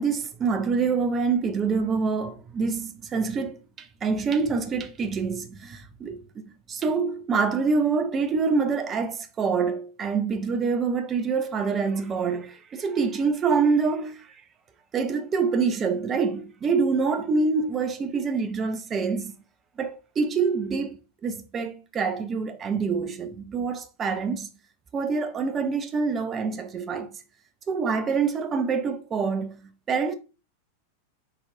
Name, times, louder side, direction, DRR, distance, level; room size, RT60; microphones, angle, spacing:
voice 1, 0.0-6.2 6.7-14.3 14.9-19.3 19.8-24.5 24.9-27.2 27.7-30.1, right 5 dB, 25° right, 0.6 m, -26 dB
4.1 x 3.9 x 2.7 m
figure-of-eight pair, 90°, 0 cm